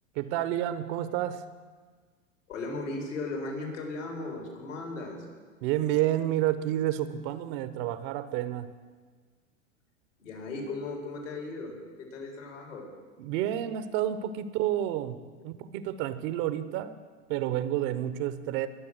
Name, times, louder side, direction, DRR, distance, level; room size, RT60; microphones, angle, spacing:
voice 1, 0.2-1.4 5.6-8.7 13.2-15.2 15.4-17.0 17.3-18.7, right 12 dB, 45° right, 13 dB, 0.8 m, -29 dB
voice 2, 2.5-5.2 10.2-12.9, left 2 dB, 80° left, 1 dB, 4.3 m, -37 dB
21.0 x 7.2 x 6.5 m, 1.5 s
hypercardioid pair, 100°, 37 cm